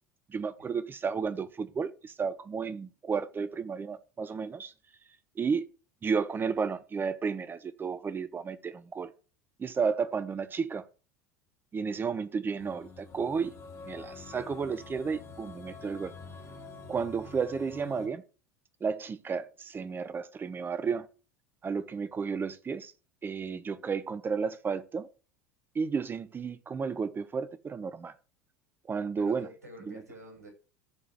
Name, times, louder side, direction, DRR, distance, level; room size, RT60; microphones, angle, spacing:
voice 1, 0.3-4.7 5.4-5.7 6.0-9.1 9.6-10.8 11.7-13.6 13.9-16.1 16.9-18.2 18.8-21.1 21.6-22.9 23.2-25.1 25.7-28.1 28.9-29.5 29.9-30.0, right 5 dB, 25° right, 1.0 m, -32 dB
sound 1, 12.6-18.1, left 3 dB, 40° left, 3.4 m, -47 dB
voice 2, 29.2-30.5, equal, 85° right, 6.4 m, -49 dB
14.5 x 5.0 x 6.6 m
figure-of-eight pair, 75°, 8 cm